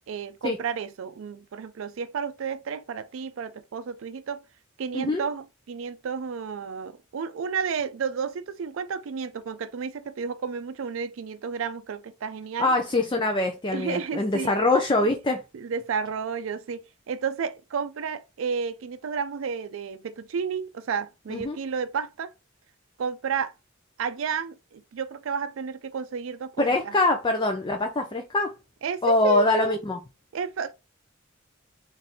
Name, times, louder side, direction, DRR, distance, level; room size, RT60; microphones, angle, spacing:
voice 1, 0.1-4.4 4.8-12.7 13.7-14.6 15.0-15.1 15.5-16.8 17.1-22.3 23.0-23.5 24.0-27.0 28.8-29.8 30.3-30.7, right 6 dB, 75° right, 0.4 m, -32 dB
voice 2, 12.6-15.4 21.3-21.6 26.6-28.5 29.0-30.0, left 2 dB, 25° left, 0.5 m, -23 dB
4.1 x 2.6 x 3.5 m
head